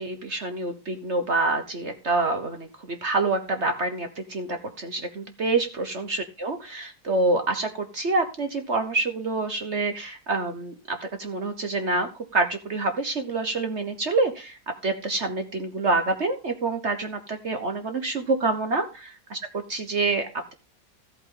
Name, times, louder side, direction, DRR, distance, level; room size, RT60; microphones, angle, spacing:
voice 1, 0.0-18.8 19.3-20.5, right 3 dB, 45° right, 7 dB, 1.1 m, -27 dB
14.0 x 8.4 x 3.9 m, 0.31 s
omnidirectional pair, 2.0 m